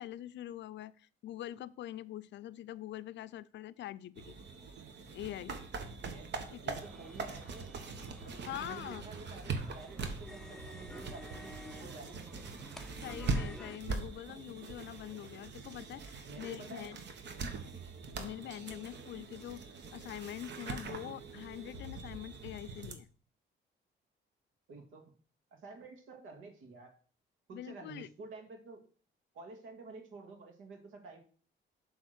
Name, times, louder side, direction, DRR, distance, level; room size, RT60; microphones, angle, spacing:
voice 1, 0.0-4.4 5.1-5.6 6.5-6.8 8.5-9.0 13.0-17.0 18.2-23.1 27.5-28.1, left 13 dB, 65° left, 16 dB, 0.4 m, -44 dB
sound 1, 4.2-22.9, right 4 dB, 60° right, 1.2 m, -42 dB
voice 2, 6.6-7.7 8.2-12.7 16.2-16.9 17.3-17.5 18.2-18.5 24.7-25.1 25.5-26.9 27.5-28.8 29.3-31.2, right 3 dB, 85° right, 3 dB, 1.9 m, -50 dB
sound 2, 6.8-13.8, left 1 dB, ahead, 0.5 m, -52 dB
7.5 x 3.5 x 6.4 m, 0.43 s
cardioid pair, 90°, 20 cm